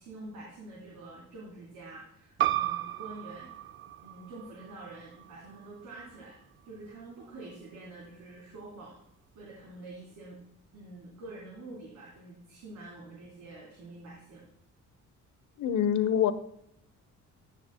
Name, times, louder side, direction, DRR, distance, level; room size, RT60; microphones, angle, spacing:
voice 1, 0.0-3.5 4.0-6.4 6.6-9.0 9.4-10.4 10.7-14.4, right 2 dB, 85° right, -6 dB, 3.6 m, -47 dB
sound 1, 2.4-7.6, right 13 dB, 40° right, 0.5 m, -35 dB
voice 2, 15.6-16.3, left 9 dB, 75° left, 12 dB, 0.9 m, -25 dB
17.0 x 6.5 x 2.2 m, 0.76 s
cardioid pair, 90°, 30 cm